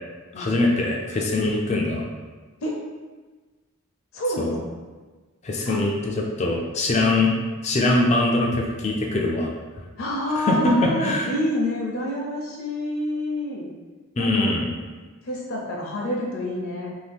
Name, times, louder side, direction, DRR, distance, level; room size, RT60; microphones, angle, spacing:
voice 1, 0.4-2.0 4.4-4.5 5.4-7.3 7.6-9.5 10.5-11.3 14.2-14.7, left 2 dB, 30° left, -1 dB, 0.3 m, -22 dB
voice 2, 4.1-4.6 5.6-5.8 10.0-13.7 14.2-14.5 15.2-16.9, left 1 dB, 70° left, -3 dB, 0.6 m, -28 dB
2.7 x 2.6 x 3.4 m, 1.3 s
head